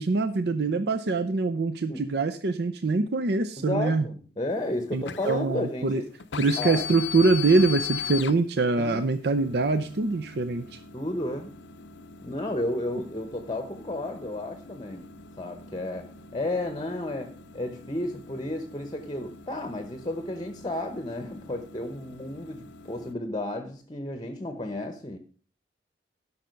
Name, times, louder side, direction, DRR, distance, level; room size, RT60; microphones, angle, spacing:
voice 1, 0.0-4.1 4.9-6.0 6.4-10.8, right 3 dB, 60° right, 0.6 m, -24 dB
voice 2, 3.6-6.0 6.6-6.8 8.8-9.0 10.9-11.6 12.2-15.1 15.4-25.2, left 1 dB, 25° left, 0.8 m, -32 dB
sound 1, 4.5-23.1, left 8 dB, 85° left, 0.7 m, -40 dB
12.0 x 5.6 x 5.2 m
head